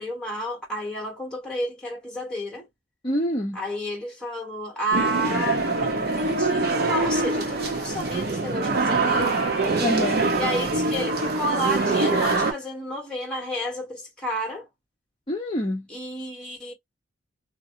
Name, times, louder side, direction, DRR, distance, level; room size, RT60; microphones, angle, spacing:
voice 1, 0.0-2.7 3.5-9.4 10.4-14.7 15.9-16.7, equal, 5° left, 1.6 m, -31 dB
voice 2, 3.0-3.6 9.8-10.2 15.3-15.8, left 1 dB, 25° left, 0.7 m, -26 dB
sound 1, 4.9-12.5, right 3 dB, 55° right, 1.0 m, -24 dB
2.8 x 2.7 x 2.6 m
head